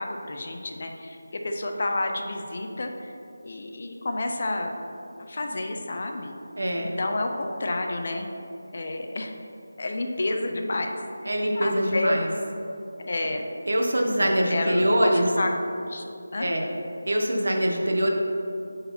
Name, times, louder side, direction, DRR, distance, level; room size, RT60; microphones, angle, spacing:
voice 1, 0.0-3.1 3.4-4.7 5.3-6.3 6.8-8.3 8.7-9.3 9.8-11.0 11.2-12.1 13.0-13.5 14.2-16.5, left 2 dB, 35° left, 3 dB, 0.4 m, -30 dB
voice 2, 6.6-6.9 11.3-12.3 13.7-15.3 16.4-16.6 17.1-18.1, equal, 70° right, 1 dB, 1.0 m, -23 dB
8.1 x 3.9 x 4.3 m, 2.7 s
figure-of-eight pair, 180°, 0 cm